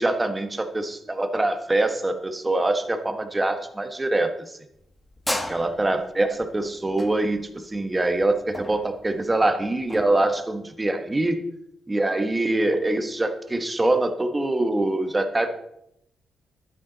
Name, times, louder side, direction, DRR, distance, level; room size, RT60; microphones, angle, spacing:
voice 1, 0.0-4.6 5.5-11.4 11.9-15.5, right 2 dB, 15° right, 7 dB, 1.1 m, -24 dB
sound 1, 4.7-10.2, left 1 dB, 10° left, 1.1 m, -34 dB
12.0 x 10.0 x 4.0 m, 0.78 s
cardioid pair, 130°, 0 cm